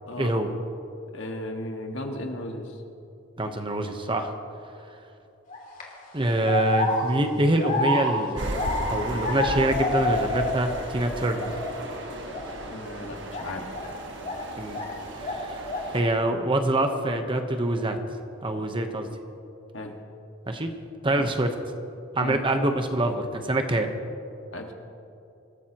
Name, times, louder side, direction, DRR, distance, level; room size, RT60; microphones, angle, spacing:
voice 1, 0.2-0.5 3.4-4.3 6.1-8.6 8.9-11.5 14.6-14.8 15.2-15.6 15.9-18.0 18.4-19.1 20.5-20.7 21.0-21.5 22.1-23.9, right 1 dB, 25° right, 5 dB, 1.0 m, -25 dB
voice 2, 1.1-2.7 12.7-13.6 19.7-19.9 22.2-22.4 24.5-24.7, left 1 dB, 65° left, 2 dB, 1.7 m, -35 dB
sound 1, 5.5-5.8 6.4-10.8 11.1-11.8 12.3-12.5 13.3-14.9 15.2-16.0, left 1 dB, 40° left, 2.6 m, -29 dB
sound 2, 8.4-16.0, right 1 dB, 60° right, 1.4 m, -36 dB
26.0 x 14.5 x 3.0 m, 2.8 s
head